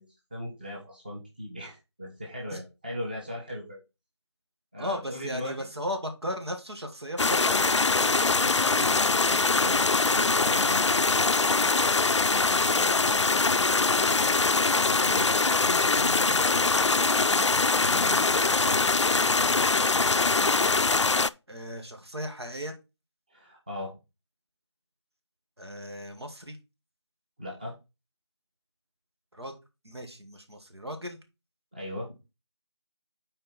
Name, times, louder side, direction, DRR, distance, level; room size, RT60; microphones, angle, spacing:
voice 1, 0.0-3.8 4.7-5.7 8.2-8.5 8.9-9.2 9.6-11.0 12.3-13.5 14.8-16.4 17.8-18.2 18.5-19.1 23.3-23.9 27.4-27.8 31.7-32.1, equal, 20° right, -3 dB, 1.5 m, -39 dB
voice 2, 4.8-9.1 21.5-22.7 25.6-26.6 29.3-29.6 29.8-31.2, equal, 65° right, 5 dB, 2.0 m, -37 dB
sound 1, 7.2-21.3, left 3 dB, 80° left, 0.5 m, -23 dB
7.6 x 4.6 x 4.3 m, 0.26 s
figure-of-eight pair, 175°, 15 cm